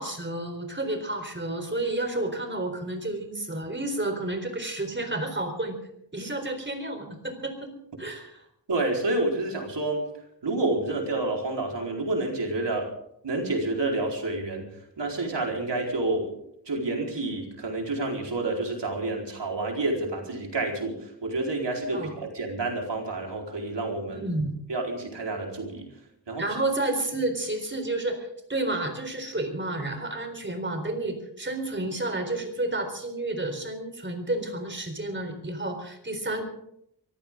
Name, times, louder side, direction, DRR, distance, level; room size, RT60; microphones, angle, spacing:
voice 1, 0.0-5.8 6.1-7.7 8.0-8.4 21.9-22.1 24.1-24.6 26.4-36.5, right 2 dB, 25° right, 5 dB, 4.1 m, -31 dB
voice 2, 8.7-10.0 10.4-12.9 13.2-14.7 15.0-16.3 16.7-24.3 24.7-25.9 26.3-26.5, right 2 dB, 80° right, 0 dB, 4.4 m, -29 dB
24.0 x 15.0 x 3.8 m, 0.74 s
wide cardioid pair, 90°, 42 cm